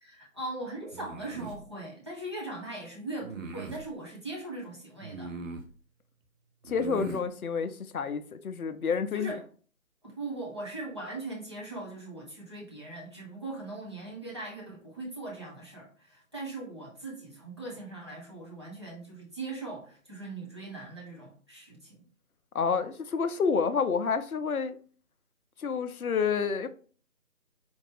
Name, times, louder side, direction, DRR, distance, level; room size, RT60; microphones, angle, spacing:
voice 1, 0.0-5.3 9.1-9.4 10.0-22.0, right 2 dB, 20° right, 0.8 m, -40 dB
sound 1, 0.9-1.6 3.2-3.9 5.0-5.7 6.6-7.3, right 4 dB, 65° right, 0.7 m, -40 dB
voice 2, 6.7-9.3 22.5-24.8 25.6-26.7, left 5 dB, 80° left, 0.6 m, -29 dB
4.3 x 2.8 x 3.2 m
figure-of-eight pair, 155°, 43 cm